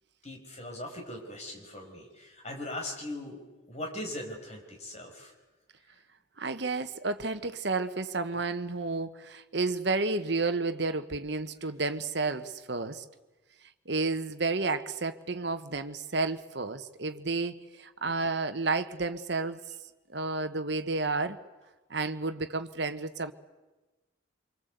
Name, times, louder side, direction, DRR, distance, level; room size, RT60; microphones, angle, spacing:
voice 1, 0.2-3.4 3.7-5.3 8.3-8.6, left 1 dB, 35° left, 5.3 m, -40 dB
voice 2, 6.4-13.0 13.8-19.6 20.1-21.4 21.9-23.3, right 3 dB, 60° right, 1.3 m, -31 dB
25.5 x 24.5 x 8.1 m
head